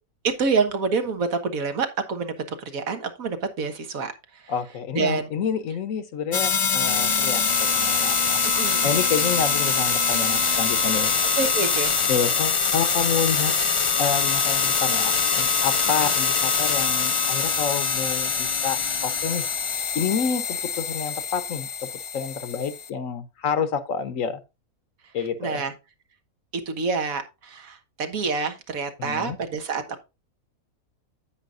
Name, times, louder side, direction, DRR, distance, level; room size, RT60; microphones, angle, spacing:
voice 1, 0.2-2.3 2.6-4.5 4.9-5.3 8.4-8.9 11.4-11.9 16.0-16.1 25.4-25.7 26.6-30.0, right 4 dB, 70° right, 1.7 m, -27 dB
voice 2, 4.5-8.4 8.8-11.1 12.1-13.5 14.0-19.5 19.9-24.4 25.1-25.6 29.0-29.4, left 7 dB, 65° left, 1.2 m, -28 dB
sound 1, 6.3-22.9, left 5 dB, 50° left, 0.3 m, -23 dB
9.7 x 8.7 x 2.5 m
omnidirectional pair, 1.5 m